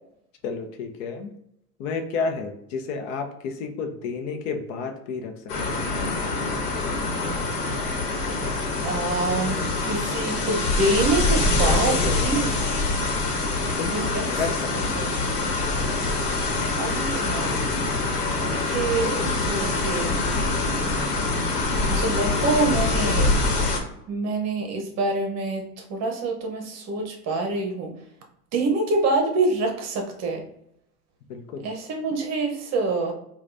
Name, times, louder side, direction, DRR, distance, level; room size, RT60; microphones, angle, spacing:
voice 1, 0.4-1.3 1.8-5.9 9.0-10.0 11.6-12.4 13.8-15.1 22.3-23.4 31.3-31.7, left 5 dB, 55° left, 5 dB, 0.8 m, -32 dB
sound 1, 5.5-23.8, left 3 dB, 85° left, 1.2 m, -25 dB
voice 2, 8.8-12.0 12.2-12.5 13.9-14.2 14.9-15.1 16.8-17.7 18.4-20.1 21.9-23.3 24.1-25.6 25.9-27.9 28.5-30.4 31.6-33.1, right 3 dB, 35° right, 2 dB, 0.9 m, -26 dB
5.0 x 2.4 x 2.6 m, 0.77 s
hypercardioid pair, 115°, 46 cm